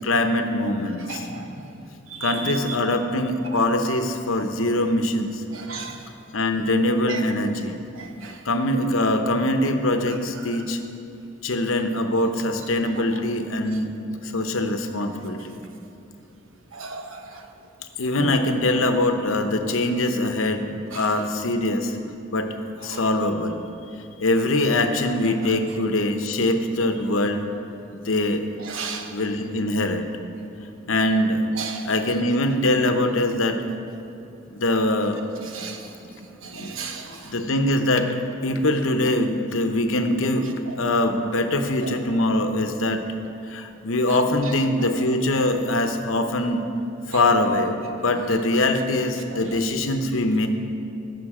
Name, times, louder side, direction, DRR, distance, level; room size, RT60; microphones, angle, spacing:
voice 1, 0.0-1.3 2.2-5.4 6.3-7.8 8.4-10.8 11.4-15.6 18.0-22.0 22.3-22.5 22.8-23.6 24.2-27.4 27.9-28.4 29.1-30.1 30.9-31.5 31.8-33.6 34.5-35.2 36.5-36.8 37.2-43.1 43.5-46.7 47.1-50.5, left 1 dB, 85° left, 6 dB, 0.9 m, -23 dB
voice 2, 1.1-1.6 2.1-2.8 5.5-6.0 7.1-7.2 7.9-8.4 10.1-10.2 16.7-17.4 18.2-18.3 20.9-21.1 22.9-23.0 28.6-29.2 31.6-31.9 35.4-36.1 36.4-37.4 40.7-40.8 41.8-41.9 44.1-44.2 47.1-47.2 49.3-49.4, right 5 dB, 85° right, 4 dB, 1.1 m, -35 dB
16.5 x 6.7 x 4.9 m, 2.6 s
head